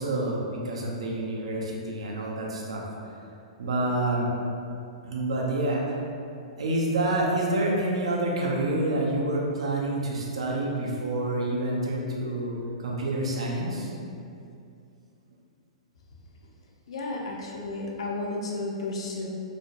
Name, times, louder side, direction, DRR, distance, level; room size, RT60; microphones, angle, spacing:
voice 1, 0.0-2.8 3.6-4.3 5.0-6.0 6.6-13.9, right 1 dB, 65° right, -3 dB, 0.5 m, -28 dB
voice 2, 16.9-19.3, left 2 dB, 60° left, -2 dB, 0.4 m, -32 dB
2.5 x 2.0 x 2.7 m, 2.5 s
figure-of-eight pair, 110°, 3 cm